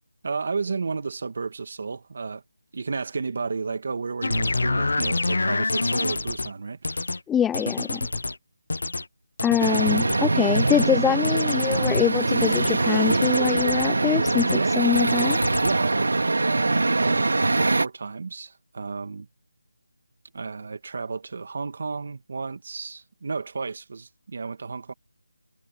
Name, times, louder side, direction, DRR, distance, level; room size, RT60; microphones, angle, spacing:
voice 1, 0.2-2.4 2.7-7.1 14.4-15.0 15.6-19.3 20.3-24.9, right 4 dB, 40° right, 2.0 m, -32 dB
sound 1, 4.2-6.5 6.8-7.2 7.5-8.4 8.7-9.0 9.4-10.2 10.5-10.9 11.2-12.1 12.4-12.8 13.1-13.9 14.3-14.6 14.9-15.8, left 3 dB, 65° left, 1.0 m, -27 dB
voice 2, 7.3-8.1 9.4-15.4, left 9 dB, 5° left, 0.5 m, -24 dB
sound 2, 9.6-17.9, right 3 dB, 65° right, 2.6 m, -23 dB
figure-of-eight pair, 175°, 0 cm